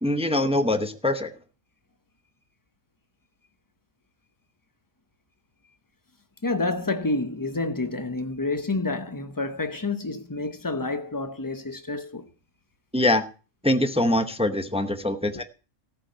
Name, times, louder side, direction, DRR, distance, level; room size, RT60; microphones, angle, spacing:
voice 1, 0.0-1.3 12.9-13.2 13.6-15.4, left 1 dB, 5° right, 0.5 m, -23 dB
voice 2, 6.4-12.2 15.3-15.4, left 2 dB, 15° left, 0.8 m, -29 dB
14.0 x 5.7 x 8.1 m
omnidirectional pair, 1.5 m